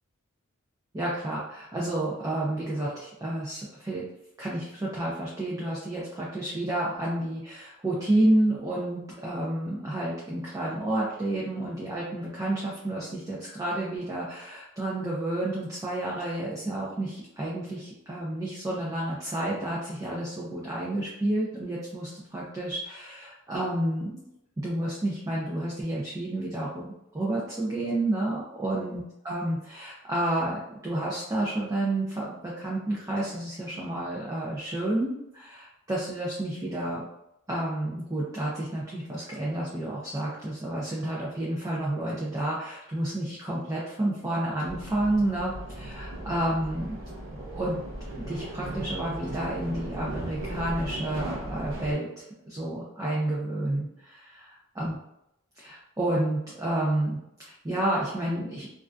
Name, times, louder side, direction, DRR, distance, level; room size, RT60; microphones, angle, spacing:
voice 1, 0.9-4.0 4.4-24.3 24.6-37.0 37.5-47.0 47.4-47.8 48.2-52.1 52.4-53.9 54.8-55.0 55.6-58.7, right 1 dB, 15° right, -6 dB, 0.4 m, -30 dB
sound 1, 44.6-51.9, right 1 dB, 70° right, 0.6 m, -37 dB
2.4 x 2.2 x 2.2 m, 0.83 s
head